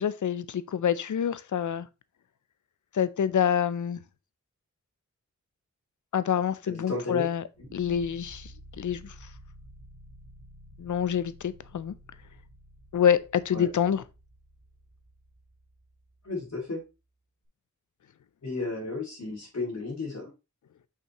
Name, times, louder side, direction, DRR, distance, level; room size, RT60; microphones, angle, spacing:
voice 1, 0.0-1.8 2.9-4.0 6.1-7.4 7.7-8.5 8.8-9.0 10.8-11.9 12.9-14.0, left 8 dB, 85° left, 0.5 m, -26 dB
voice 2, 6.7-7.2 13.5-13.7 16.2-16.8 18.4-20.3, left 3 dB, 65° left, 2.1 m, -33 dB
sound 1, 7.5-16.7, equal, 50° right, 2.1 m, -52 dB
6.0 x 5.6 x 3.0 m
wide cardioid pair, 95°, 29 cm